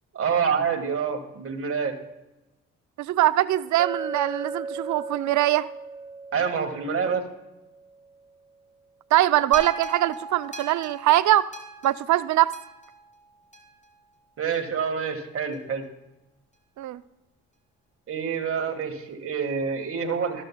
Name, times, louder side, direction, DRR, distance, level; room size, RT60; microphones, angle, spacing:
voice 1, 0.1-2.0 6.3-7.2 14.4-15.8 18.1-20.4, right 6 dB, 50° right, 5 dB, 1.7 m, -27 dB
voice 2, 3.0-5.7 9.1-11.5 11.8-12.5 16.8-17.0, right 14 dB, 70° right, 15 dB, 0.5 m, -22 dB
Chink clink, 3.8-8.0, right 4 dB, 15° right, 0.3 m, -36 dB
sound 1, 9.5-13.9 14.5-14.6, right 2 dB, 25° left, 2.6 m, -39 dB
13.5 x 13.0 x 2.3 m, 0.99 s
cardioid pair, 90°, 30 cm